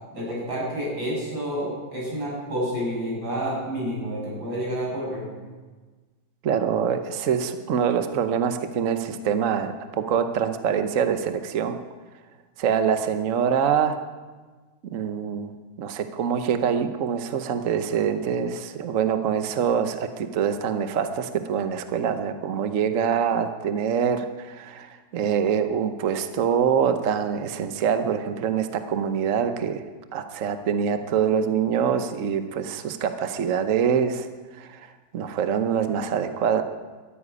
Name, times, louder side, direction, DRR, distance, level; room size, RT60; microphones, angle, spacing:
voice 1, 0.1-5.3, equal, 70° right, -5 dB, 7.3 m, -29 dB
voice 2, 6.4-11.8 12.6-14.0 14.8-15.5 15.8-29.8 30.1-34.3 34.6-34.9 35.1-36.6, right 7 dB, 55° right, 8 dB, 1.0 m, -25 dB
13.5 x 10.0 x 9.8 m, 1.3 s
omnidirectional pair, 2.2 m